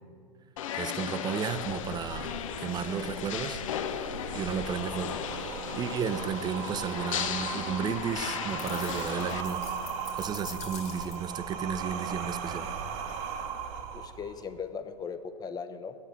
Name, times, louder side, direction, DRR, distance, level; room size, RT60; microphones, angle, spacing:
sound 1, 0.6-9.4, left 9 dB, 65° left, 0.6 m, -36 dB
voice 1, 0.7-3.6 4.3-5.2 5.7-9.6 10.1-12.7, right 7 dB, 25° right, 12 dB, 0.5 m, -33 dB
sound 2, 1.6-14.5, right 6 dB, 50° right, 0.9 m, -38 dB
sound 3, 8.6-11.4, left 8 dB, 40° left, 1.3 m, -46 dB
voice 2, 13.9-16.0, left 6 dB, 20° left, 9 dB, 0.7 m, -38 dB
8.4 x 6.8 x 7.6 m, 2.1 s
figure-of-eight pair, 90°, 18 cm